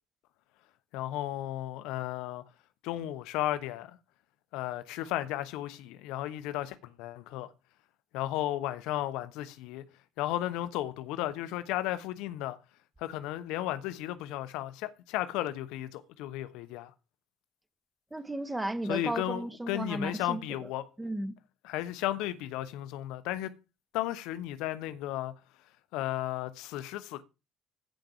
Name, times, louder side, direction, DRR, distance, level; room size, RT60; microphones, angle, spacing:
voice 1, 0.9-2.4 2.8-4.0 4.5-7.5 8.1-9.8 10.2-12.6 13.0-16.9 18.9-20.9 21.6-23.6 23.9-25.3 25.9-27.2, left 14 dB, 65° left, 1.0 m, -34 dB
voice 2, 18.1-20.7 21.0-21.3, right 1 dB, 10° right, 1.5 m, -34 dB
14.5 x 5.2 x 6.1 m
figure-of-eight pair, 50°, 0 cm